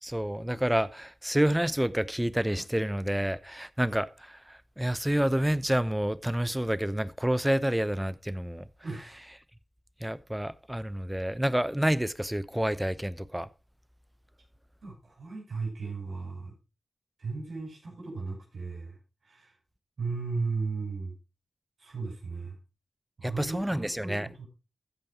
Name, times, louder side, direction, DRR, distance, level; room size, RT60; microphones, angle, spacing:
voice 1, 0.0-8.7 10.0-13.5 23.2-24.3, right 1 dB, 10° right, 0.8 m, -29 dB
voice 2, 8.8-9.2 14.8-16.5 17.2-19.0 19.2-19.5 20.0-21.1 21.8-22.6 23.2-24.5, right 4 dB, 75° right, 5.8 m, -36 dB
15.0 x 5.3 x 4.3 m
cardioid pair, 45°, 0 cm